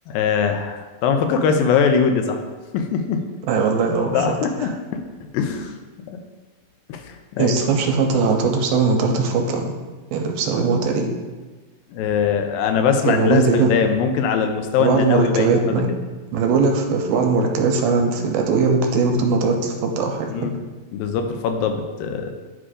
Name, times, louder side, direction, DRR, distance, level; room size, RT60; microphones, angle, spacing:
voice 1, 0.1-2.4 2.7-3.2 4.1-5.0 5.3-5.7 6.1-6.2 6.9-7.6 11.9-15.8 20.3-20.6 20.9-22.3, left 6 dB, 80° left, 6 dB, 2.3 m, -21 dB
voice 2, 3.5-4.4 7.4-9.7 10.1-11.1 13.1-13.7 14.8-15.9 16.3-20.5, right 4 dB, 85° right, 3 dB, 2.3 m, -20 dB
9.9 x 4.9 x 2.5 m, 1.3 s
omnidirectional pair, 4.1 m